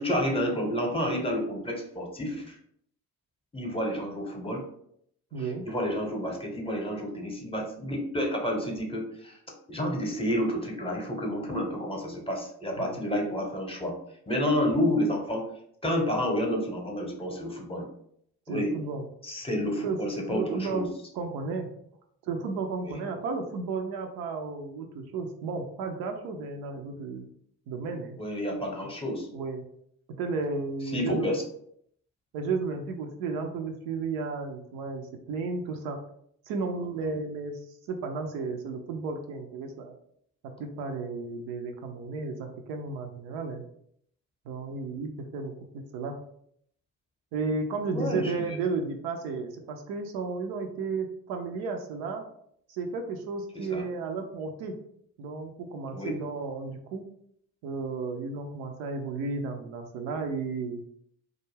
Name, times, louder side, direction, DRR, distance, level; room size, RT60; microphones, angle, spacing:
voice 1, 0.0-2.6 3.5-4.6 5.4-9.4 9.7-13.9 14.3-15.5 15.8-17.9 18.5-18.7 19.2-20.8 22.8-23.0 28.2-29.3 30.9-31.4 37.0-37.1 47.9-48.6 53.5-53.8 55.9-56.1, equal, 15° left, 0 dB, 0.8 m, -30 dB
voice 2, 5.3-5.6 12.8-13.0 18.5-19.0 19.8-20.0 20.3-20.8 21.1-21.7 22.2-27.3 27.7-28.2 29.3-29.6 30.2-31.3 32.3-36.0 36.5-37.6 37.9-39.9 40.6-43.6 44.5-46.2 47.3-52.2 52.7-54.7 55.2-57.0 57.6-60.8, right 4 dB, 65° right, 4 dB, 0.5 m, -33 dB
2.3 x 2.0 x 3.2 m, 0.68 s
hypercardioid pair, 45°, 40 cm